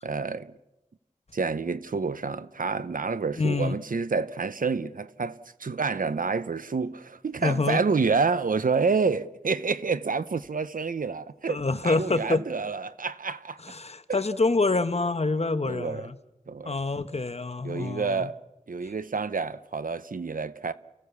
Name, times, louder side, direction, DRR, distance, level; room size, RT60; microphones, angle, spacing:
voice 1, 0.0-0.5 1.3-13.6 14.1-14.2 15.6-16.1 16.5-16.8 17.6-18.4 18.7-20.7, right 4 dB, 80° right, 0.8 m, -28 dB
voice 2, 3.4-3.8 7.4-7.8 11.5-12.4 13.6-16.2 16.6-18.3, left 3 dB, 50° left, 1.3 m, -26 dB
29.5 x 16.5 x 7.1 m
wide cardioid pair, 55°, 14 cm